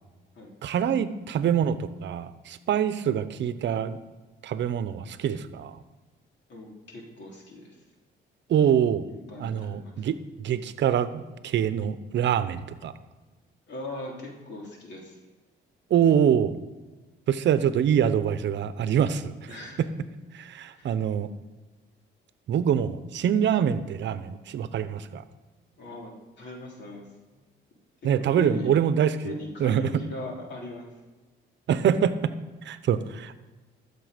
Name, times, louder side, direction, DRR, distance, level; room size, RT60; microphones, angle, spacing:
voice 1, 0.6-4.0 4.4-5.8 8.5-9.1 9.4-12.9 15.9-16.5 17.3-19.4 19.8-19.9 20.3-21.3 22.5-25.2 28.0-29.3 29.6-30.0 31.7-32.3 32.6-33.4, right 9 dB, 65° right, 13 dB, 0.8 m, -25 dB
voice 2, 6.5-7.8 9.1-10.1 13.7-15.2 19.5-19.8 20.7-20.9 25.8-26.1 26.4-27.1 28.2-28.7 29.2-30.9, left 2 dB, 65° left, 0 dB, 3.2 m, -39 dB
13.5 x 6.8 x 5.1 m, 1.3 s
cardioid pair, 90°, 20 cm